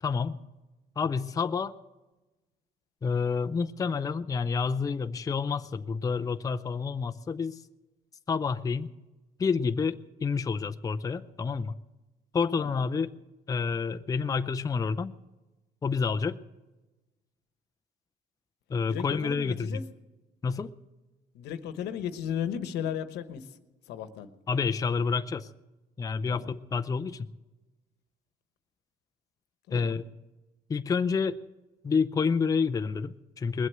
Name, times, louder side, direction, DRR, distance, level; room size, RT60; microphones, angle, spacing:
voice 1, 0.0-0.4 1.0-1.7 3.0-7.6 8.3-8.9 9.4-11.7 12.3-13.1 13.5-15.1 15.8-16.4 18.7-19.8 20.4-20.7 24.5-25.5 26.0-27.3 29.7-30.1 30.7-31.4 31.8-33.7, left 5 dB, 20° left, 10 dB, 0.5 m, -29 dB
voice 2, 18.9-19.9 21.3-23.6 23.9-24.3 26.3-26.5 29.7-30.0, left 9 dB, 80° left, 11 dB, 1.1 m, -35 dB
20.5 x 7.9 x 7.9 m, 1.1 s
cardioid pair, 110°, 17 cm